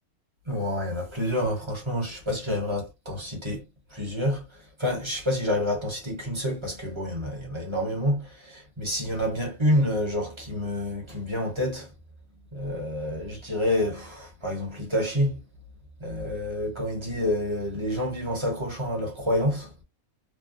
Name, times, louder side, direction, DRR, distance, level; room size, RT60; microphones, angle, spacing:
voice 1, 0.5-3.6 3.9-11.9 12.5-15.4 16.0-19.7, left 1 dB, 25° right, 0.9 m, -28 dB
3.2 x 2.1 x 2.5 m
omnidirectional pair, 1.5 m